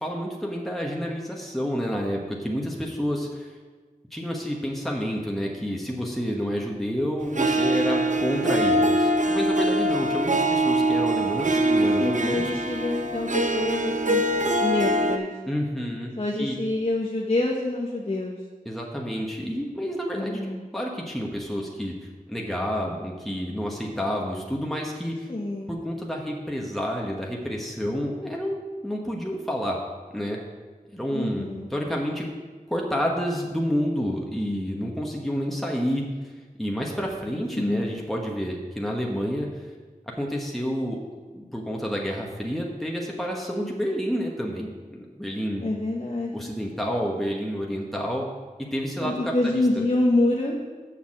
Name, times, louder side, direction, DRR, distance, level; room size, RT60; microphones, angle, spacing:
voice 1, 0.0-3.5 4.1-12.5 15.5-16.6 18.6-20.4 20.7-25.3 25.7-29.8 30.1-30.4 30.9-31.4 31.7-32.3 32.7-36.0 36.6-39.7 40.1-45.6 46.3-48.3 48.7-49.9, equal, ahead, -1 dB, 1.1 m, -29 dB
Harp, 7.3-15.2, right 1 dB, 60° right, 0.6 m, -23 dB
voice 2, 11.5-14.2 14.6-15.3 16.2-18.4 20.2-20.7 25.3-25.7 31.1-31.7 37.5-37.9 45.6-46.5 49.0-50.6, left 2 dB, 45° left, -2 dB, 0.9 m, -26 dB
6.6 x 5.8 x 7.3 m, 1.4 s
wide cardioid pair, 55°, 15 cm